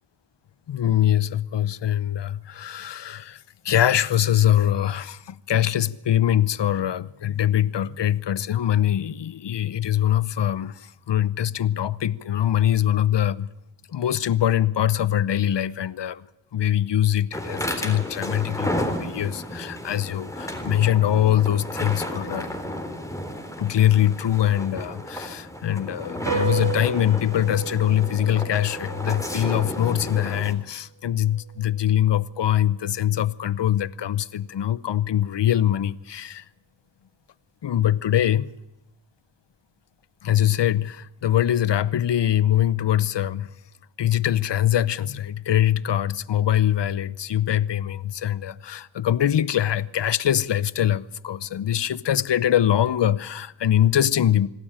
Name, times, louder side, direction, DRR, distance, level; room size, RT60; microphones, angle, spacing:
voice 1, 0.7-13.5 13.9-16.2 16.5-22.5 23.6-36.4 37.6-38.5 40.2-43.5 44.0-54.5, left 11 dB, 60° left, 0.9 m, -23 dB
sound 1, 17.3-30.5, left 1 dB, 5° left, 3.7 m, -32 dB
sound 2, 26.3-33.0, right 6 dB, 65° right, 3.9 m, -35 dB
26.0 x 12.5 x 9.0 m
cardioid pair, 60°, 47 cm